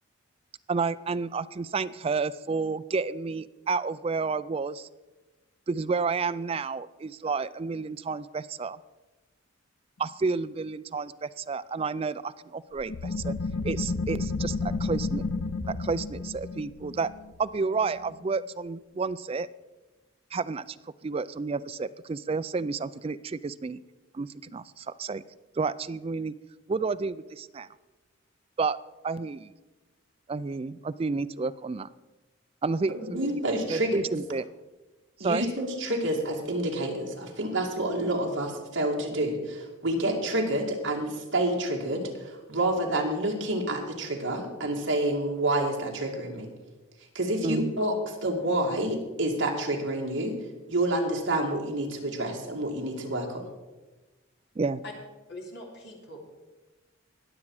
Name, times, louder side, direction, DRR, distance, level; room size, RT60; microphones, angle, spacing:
voice 1, 0.7-4.9 5.7-8.8 10.0-13.3 13.6-15.2 15.7-17.1 17.4-19.5 20.3-23.8 24.1-25.2 25.6-26.3 26.7-27.7 28.6-28.8 29.0-29.5 30.3-31.9 32.6-33.3 33.7-34.5 35.2-35.5 47.4-47.8 54.6-54.8, right 4 dB, 30° right, 14 dB, 0.3 m, -30 dB
sound 1, 12.8-18.1, left 3 dB, 90° left, 0.7 m, -32 dB
voice 2, 33.0-34.0 35.2-46.5 47.1-47.9 48.2-50.3 50.7-53.5, right 1 dB, 65° right, 0 dB, 2.3 m, -28 dB
voice 3, 55.3-56.2, left 1 dB, 55° left, 0 dB, 2.9 m, -42 dB
20.0 x 7.2 x 4.8 m, 1.2 s
head